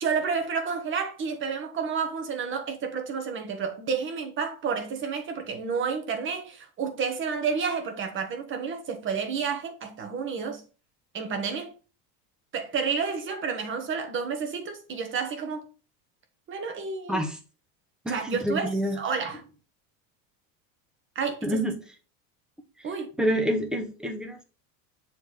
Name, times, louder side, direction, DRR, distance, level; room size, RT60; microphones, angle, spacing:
voice 1, 0.0-10.6 11.1-11.7 12.5-15.6 16.5-17.3 18.1-18.7 19.0-19.4 21.1-21.6 22.8-23.1, right 5 dB, 30° right, 1.2 m, -30 dB
voice 2, 18.0-19.0 21.4-21.7 23.2-24.4, equal, ahead, 0.7 m, -27 dB
7.2 x 3.3 x 4.2 m
cardioid pair, 155°, 42 cm